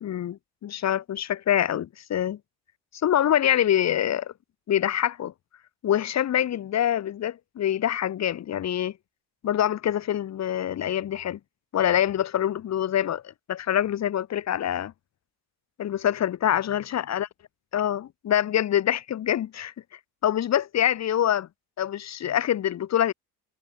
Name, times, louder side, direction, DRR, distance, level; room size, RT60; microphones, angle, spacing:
voice 1, 0.0-2.4 3.0-4.3 4.7-5.3 5.8-8.9 9.4-11.4 11.7-13.2 13.5-14.9 15.8-17.3 17.7-19.7 20.2-21.5 21.8-23.1, left 10 dB, 35° left, 0.7 m, -25 dB
supercardioid pair, 80°, 49 cm